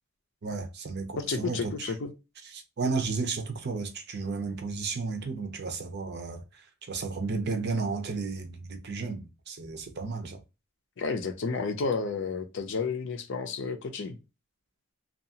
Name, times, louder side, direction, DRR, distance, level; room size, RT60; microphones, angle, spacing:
voice 1, 0.4-1.9 2.5-10.4, right 4 dB, 50° right, 0.6 m, -33 dB
voice 2, 1.2-2.1 11.0-14.2, left 4 dB, 60° left, 0.5 m, -31 dB
2.7 x 2.4 x 2.7 m
head